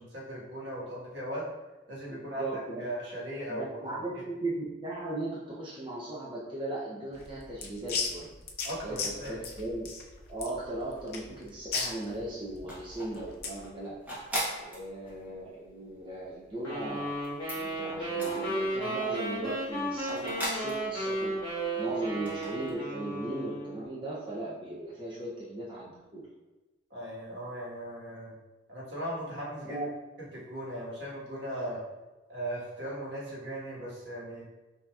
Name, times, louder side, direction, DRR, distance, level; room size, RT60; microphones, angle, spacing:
voice 1, 0.0-1.4 1.9-2.5 2.8-4.0 8.6-9.4 26.9-28.3 28.7-29.8 30.3-31.8 32.3-34.4, right 1 dB, 70° right, -6 dB, 1.4 m, -38 dB
voice 2, 2.1-2.8 3.5-4.6 4.8-8.3 8.8-9.9 10.3-14.0 14.6-17.1 17.5-26.3 29.6-29.9, right 2 dB, 25° right, -6 dB, 0.5 m, -38 dB
sound 1, 7.1-13.7, left 5 dB, 55° left, 0.5 m, -37 dB
sound 2, 11.0-11.7 11.9-19.0 19.4-21.7 22.1-22.7, equal, 10° right, 1.0 m, -39 dB
sound 3, 16.6-23.8, right 1 dB, 20° left, 1.5 m, -34 dB
5.8 x 2.7 x 2.3 m, 1.1 s
head